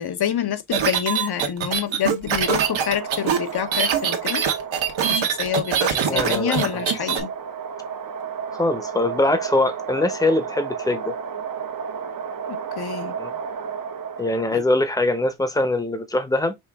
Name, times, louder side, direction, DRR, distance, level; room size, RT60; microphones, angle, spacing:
voice 1, 0.0-4.4 5.1-7.3 12.5-13.1 14.5-14.6, left 10 dB, 50° left, 0.8 m, -27 dB
sound 1, 0.7-7.2, right 8 dB, 70° right, 1.2 m, -23 dB
sound 2, 2.2-14.7, right 6 dB, 45° right, 0.8 m, -33 dB
voice 2, 5.9-7.1 8.5-11.2 13.2-13.4 14.2-16.6, left 2 dB, 5° left, 0.8 m, -23 dB
5.5 x 2.5 x 3.5 m
wide cardioid pair, 130°, 49 cm